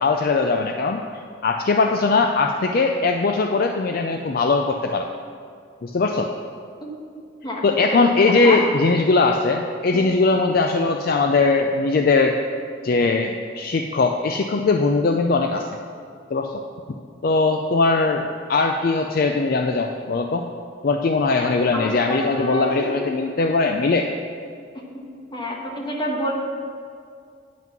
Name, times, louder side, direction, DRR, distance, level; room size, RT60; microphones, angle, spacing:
voice 1, 0.0-1.0 1.4-5.1 5.8-6.3 7.6-12.4 12.8-15.7 16.3-16.6 17.2-20.5 20.8-24.1, left 3 dB, 45° left, 4 dB, 0.4 m, -20 dB
voice 2, 7.4-8.0 8.4-8.6 9.9-10.1 21.7-22.9 24.9-25.0 25.3-26.3, equal, 20° left, -1 dB, 1.2 m, -28 dB
9.2 x 5.8 x 6.0 m, 2.3 s
head